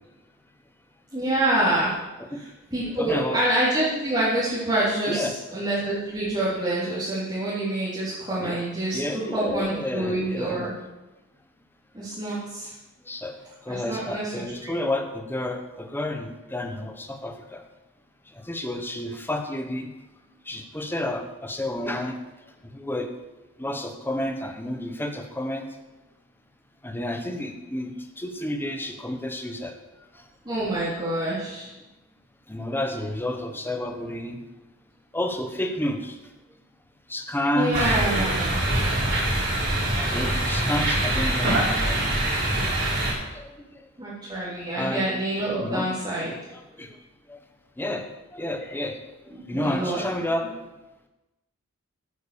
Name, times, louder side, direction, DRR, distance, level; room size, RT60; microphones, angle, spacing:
voice 1, 1.1-1.9 2.7-5.2 5.5-9.0 9.3-10.7 11.9-12.7 13.7-14.7 30.5-31.7 37.5-38.6 44.0-46.3 49.5-50.0, right 1 dB, 20° right, -10 dB, 3.5 m, -26 dB
voice 2, 2.8-3.4 5.1-5.3 8.4-8.6 8.9-10.7 13.1-13.3 13.6-17.6 18.4-19.9 20.5-22.2 22.6-23.1 23.6-25.7 26.8-29.7 32.5-34.4 35.1-36.2 37.1-38.0 40.0-42.3 43.3-43.6 44.7-45.1 45.6-45.9 46.3-47.0 47.3-47.4 47.8-48.0 48.3-49.1 49.5-50.5, left 1 dB, 10° left, 5 dB, 1.1 m, -30 dB
sound 1, 37.7-43.1, right 1 dB, 55° right, 5.1 m, -24 dB
10.0 x 9.1 x 7.0 m, 1.1 s
head